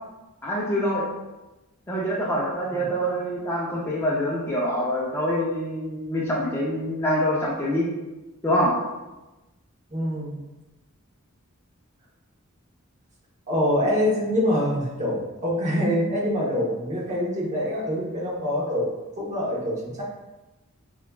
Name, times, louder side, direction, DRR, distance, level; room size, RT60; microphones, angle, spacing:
voice 1, 0.4-1.1 1.9-7.9 8.4-8.8, equal, 10° left, -5 dB, 0.4 m, -25 dB
voice 2, 9.9-10.4 13.5-18.9 19.2-20.0, equal, 35° right, -4 dB, 0.8 m, -25 dB
4.7 x 2.2 x 2.2 m, 1.1 s
head